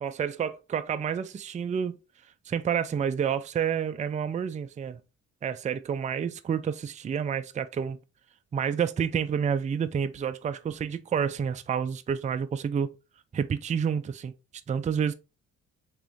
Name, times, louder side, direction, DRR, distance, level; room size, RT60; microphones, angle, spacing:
voice 1, 0.0-2.0 2.5-5.0 5.4-8.0 8.5-12.9 13.3-14.3 14.7-15.1, right 7 dB, 25° right, 0.4 m, -29 dB
3.6 x 3.0 x 3.5 m
cardioid pair, 90°, 30 cm